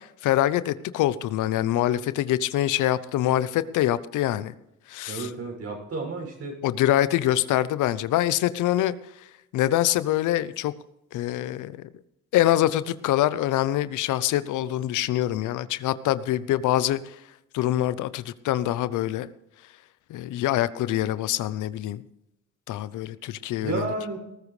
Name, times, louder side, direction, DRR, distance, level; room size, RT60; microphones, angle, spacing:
voice 1, 0.0-4.5 4.9-5.3 6.6-9.0 9.5-10.7 11.1-11.9 12.3-17.2 17.5-19.3 20.1-22.0 22.7-23.9, left 13 dB, 85° left, 15 dB, 0.7 m, -25 dB
voice 2, 5.1-6.6 23.6-24.2, right 3 dB, 55° right, 1 dB, 6.6 m, -31 dB
19.5 x 13.5 x 3.2 m, 0.86 s
cardioid pair, 90°, 30 cm